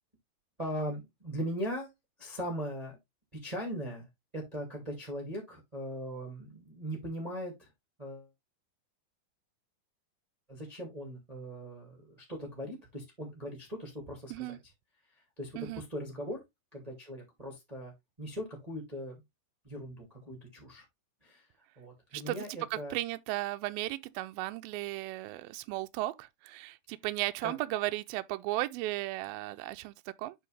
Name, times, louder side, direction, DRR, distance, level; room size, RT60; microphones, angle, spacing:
voice 1, 0.6-1.9 2.2-3.0 3.3-4.1 4.3-7.7 8.0-8.3 10.5-14.6 15.4-16.4 16.7-17.9 18.2-19.2 19.6-20.8 21.2-21.4 21.7-22.9 27.4-27.5, equal, 15° right, 1.6 m, -39 dB
voice 2, 22.1-30.4, right 17 dB, 80° right, 2.2 m, -35 dB
7.7 x 5.0 x 3.3 m
omnidirectional pair, 4.3 m